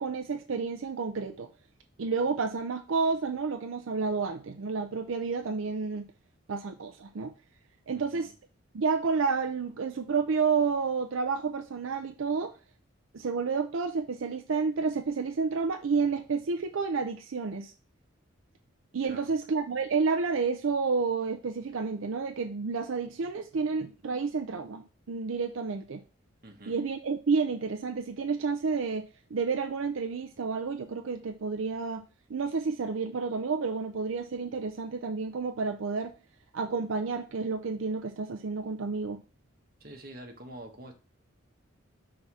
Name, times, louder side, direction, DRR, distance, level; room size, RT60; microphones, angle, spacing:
voice 1, 0.0-1.5 2.0-6.1 6.5-7.3 7.9-8.3 8.7-12.5 13.1-17.7 18.9-26.0 26.7-29.0 29.3-32.0 32.3-36.1 36.5-39.2, right 4 dB, 75° right, 5 dB, 0.5 m, -30 dB
voice 2, 7.9-8.3 19.1-19.3 26.4-26.8 39.8-40.9, right 1 dB, 45° right, 3 dB, 1.1 m, -46 dB
5.6 x 3.8 x 4.6 m, 0.34 s
head